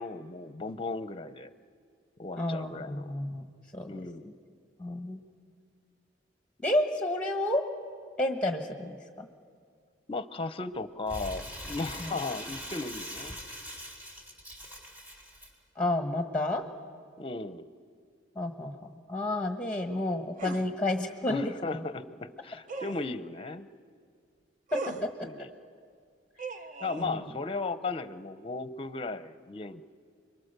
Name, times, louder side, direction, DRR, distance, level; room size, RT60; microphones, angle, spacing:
voice 1, 0.0-1.5 2.2-3.1 3.9-4.3 10.1-13.4 17.2-17.7 21.3-23.7 25.2-25.5 26.8-29.8, left 3 dB, 30° left, 13 dB, 0.7 m, -36 dB
voice 2, 2.4-3.4 3.7-3.9 4.8-5.2 6.6-7.6 8.2-9.3 12.0-12.1 15.8-16.6 18.3-21.8 25.0-25.1 27.0-27.3, left 1 dB, 5° left, 6 dB, 1.2 m, -31 dB
Crumpling crinkling, 11.1-15.5, equal, 10° right, 4.5 m, -42 dB
sound 1, 20.4-20.7 22.7-23.1 24.7-25.1 26.4-27.1, right 3 dB, 45° right, 0.9 m, -38 dB
29.5 x 22.5 x 6.7 m, 2.1 s
head